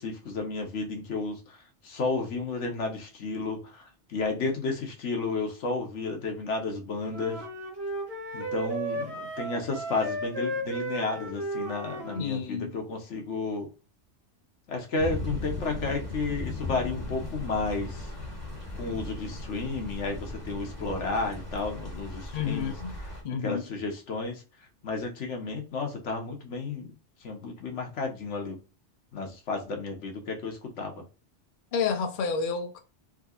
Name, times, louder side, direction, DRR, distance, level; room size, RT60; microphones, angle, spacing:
voice 1, 0.0-1.6 1.8-3.8 4.1-7.4 8.3-13.7 14.7-18.1 18.7-22.7 23.4-24.4 24.8-26.9 27.2-28.6 29.1-31.0, left 3 dB, 85° left, 1.3 m, -32 dB
sound 1, 7.1-12.3, right 1 dB, 60° right, 1.5 m, -34 dB
voice 2, 12.1-12.7 22.3-22.9 23.2-23.6 31.7-32.8, left 6 dB, 55° left, 0.7 m, -30 dB
sound 2, 15.0-23.2, left 2 dB, 15° left, 1.5 m, -37 dB
3.8 x 2.7 x 2.3 m
omnidirectional pair, 1.2 m